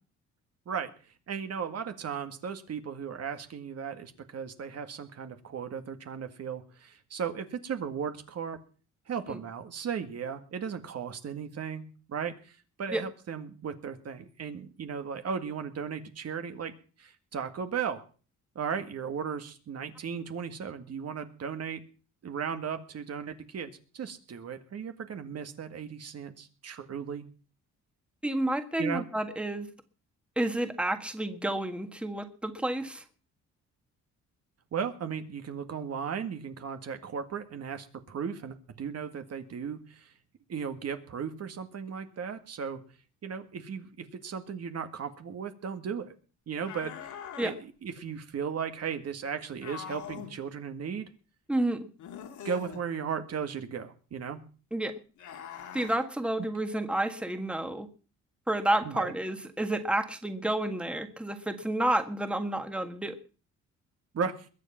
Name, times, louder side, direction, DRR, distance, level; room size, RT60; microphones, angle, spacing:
voice 1, 1.3-8.6 9.1-16.7 17.0-18.0 18.6-21.8 22.2-27.3 28.8-29.1 34.7-40.1 40.5-42.8 43.2-46.1 46.5-47.1 47.4-51.1 52.4-54.4 58.8-59.1 64.1-64.5, right 7 dB, 55° right, 8 dB, 1.9 m, -36 dB
voice 2, 28.2-29.7 30.4-33.0 47.4-47.5 51.5-51.9 54.7-54.9 55.7-57.9 58.5-63.2, right 1 dB, 5° right, 8 dB, 1.7 m, -30 dB
sound 1, 46.7-47.6 49.6-50.4 52.0-52.8 55.2-56.0, left 8 dB, 75° left, 2.6 m, -42 dB
21.5 x 7.7 x 5.8 m, 0.38 s
cardioid pair, 90°, 30 cm